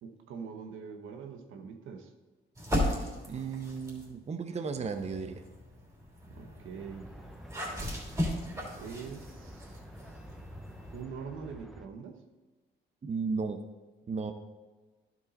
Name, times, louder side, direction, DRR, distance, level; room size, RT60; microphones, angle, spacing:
voice 1, 0.0-2.1 6.3-7.1 8.8-9.8 10.9-12.2, right 6 dB, 80° right, 5 dB, 1.0 m, -43 dB
sound 1, 2.6-4.1 4.8-11.0, left 1 dB, 15° right, 3.0 m, -36 dB
voice 2, 3.3-5.4 13.0-13.6 14.1-14.3, right 5 dB, 35° right, 7 dB, 0.7 m, -34 dB
sound 2, 6.8-11.9, right 1 dB, ahead, 0.7 m, -51 dB
11.5 x 5.4 x 4.1 m, 1.2 s
cardioid pair, 90°, 20 cm